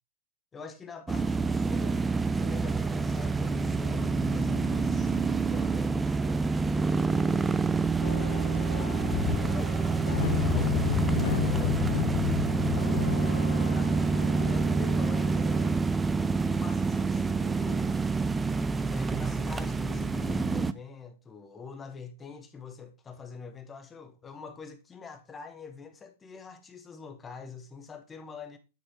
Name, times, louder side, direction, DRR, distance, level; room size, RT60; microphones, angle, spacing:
voice 1, 0.5-2.1 2.4-7.6 8.0-9.2 9.5-10.9 11.4-11.9 12.2-12.6 13.5-15.8 16.4-17.9 18.9-28.6, left 5 dB, 20° left, 1.5 m, -45 dB
sound 1, 1.1-20.7, right 4 dB, 15° right, 0.5 m, -27 dB
sound 2, 8.0-15.8, left 11 dB, 60° left, 0.9 m, -32 dB
9.5 x 4.2 x 4.8 m
hypercardioid pair, 115°, 0 cm